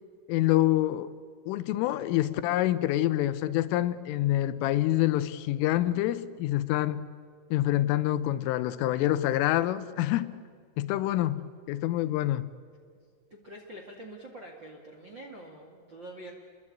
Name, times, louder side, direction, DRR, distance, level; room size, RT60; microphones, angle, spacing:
voice 1, 0.3-1.1 1.5-7.0 7.5-10.4 10.8-11.4 11.7-12.4, left 14 dB, 85° left, 14 dB, 3.4 m, -26 dB
voice 2, 13.3-16.3, right 1 dB, 45° right, 1 dB, 1.5 m, -45 dB
30.0 x 22.0 x 8.6 m, 2.1 s
omnidirectional pair, 5.7 m